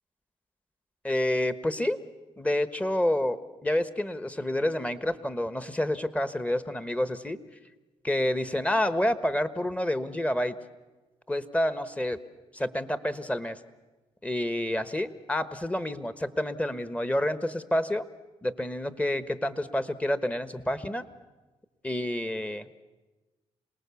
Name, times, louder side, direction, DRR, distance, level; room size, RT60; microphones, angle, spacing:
voice 1, 1.0-2.0 2.4-7.4 8.0-10.5 11.3-12.2 12.5-13.6 14.2-18.0 18.4-21.0 21.8-22.7, left 1 dB, 10° left, 12 dB, 1.1 m, -28 dB
27.0 x 19.0 x 7.1 m, 1.2 s
cardioid pair, 90°, 11 cm